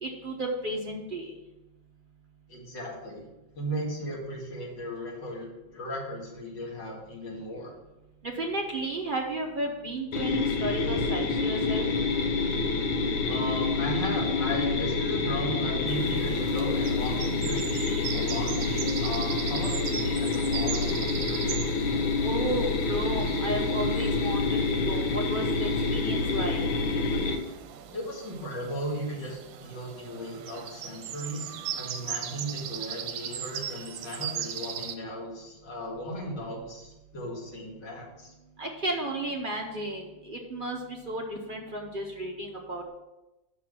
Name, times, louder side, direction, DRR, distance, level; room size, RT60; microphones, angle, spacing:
voice 1, 0.0-1.3 8.2-11.9 22.2-24.6 24.8-26.6 38.6-42.9, right 1 dB, 60° right, 0 dB, 0.5 m, -33 dB
voice 2, 2.5-3.2 3.5-5.5 5.7-7.7 13.2-21.7 27.9-38.3, equal, 65° left, -2 dB, 2.6 m, -36 dB
sound 1, 10.1-27.4, left 3 dB, 90° left, 1.6 m, -27 dB
sound 2, 15.9-34.9, right 9 dB, 80° right, 1.4 m, -39 dB
6.1 x 5.7 x 6.1 m, 0.99 s
omnidirectional pair, 2.1 m